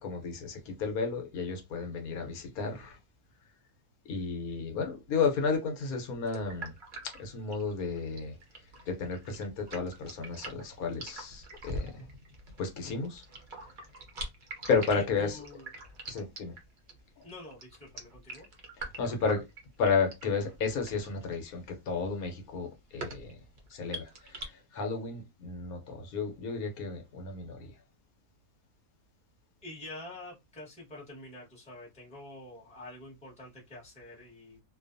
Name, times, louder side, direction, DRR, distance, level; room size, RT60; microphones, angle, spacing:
voice 1, 0.0-3.0 4.1-6.7 7.2-8.3 8.9-12.0 12.6-13.2 14.7-15.4 16.1-16.5 18.8-19.4 19.8-23.3 23.7-27.7, left 5 dB, 75° left, 1.1 m, -32 dB
sound 1, 6.3-24.5, right 2 dB, 55° right, 0.6 m, -44 dB
voice 2, 14.9-15.7 17.2-18.5 29.6-34.6, left 1 dB, 5° left, 0.8 m, -47 dB
2.5 x 2.2 x 2.5 m
omnidirectional pair, 1.6 m